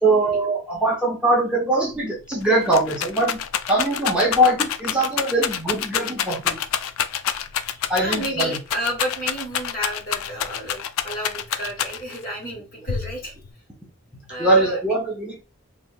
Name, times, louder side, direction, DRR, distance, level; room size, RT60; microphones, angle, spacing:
voice 1, 0.0-3.4 3.7-6.6 7.9-8.6 14.4-15.4, right 1 dB, 5° right, -4 dB, 0.7 m, -21 dB
Rattle, 1.9-2.0 2.3-12.2 12.9-13.5, left 9 dB, 75° left, 0.3 m, -27 dB
voice 2, 7.7-13.3 14.3-14.8, equal, 40° left, -1 dB, 1.4 m, -31 dB
3.2 x 2.7 x 2.4 m, 0.30 s
head